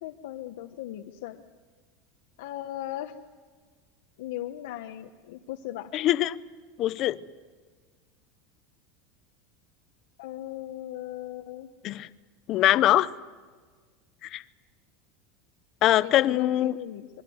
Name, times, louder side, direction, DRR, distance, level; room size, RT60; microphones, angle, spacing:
voice 1, 0.0-1.4 2.4-3.2 4.2-5.9 10.2-11.7 16.0-17.1, left 13 dB, 70° left, 1.2 m, -38 dB
voice 2, 5.9-6.4 6.8-7.2 11.8-12.1 12.5-13.1 14.3-14.4 15.8-16.8, left 14 dB, 30° left, 0.7 m, -22 dB
27.0 x 22.5 x 7.9 m
supercardioid pair, 180°, 0 cm